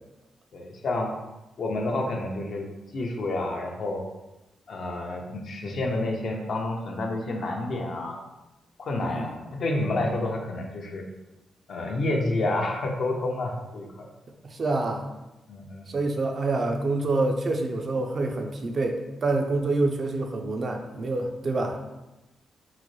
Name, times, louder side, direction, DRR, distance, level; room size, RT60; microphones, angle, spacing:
voice 1, 0.5-1.1 1.6-2.6 2.9-4.0 4.7-8.2 8.8-11.0 11.7-14.1 15.5-15.9, left 2 dB, 65° left, 1 dB, 0.6 m, -29 dB
voice 2, 9.0-9.3 14.4-15.0 15.9-21.8, right 2 dB, 50° right, 3 dB, 0.5 m, -27 dB
3.7 x 2.1 x 3.1 m, 1.0 s
cardioid pair, 65°, 0 cm